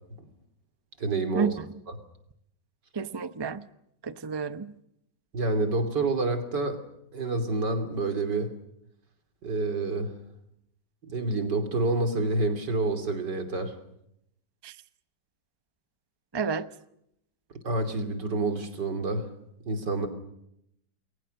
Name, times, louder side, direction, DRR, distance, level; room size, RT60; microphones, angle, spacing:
voice 1, 1.0-1.5 1.9-2.0 5.3-6.8 7.1-8.6 9.4-10.1 11.1-13.7 17.6-19.3 19.7-20.1, right 2 dB, 70° right, 3.6 m, -28 dB
voice 2, 2.9-3.6 4.0-4.7 14.6-14.7 16.3-16.7, right 5 dB, 25° right, 0.5 m, -30 dB
29.0 x 22.0 x 6.6 m
omnidirectional pair, 1.9 m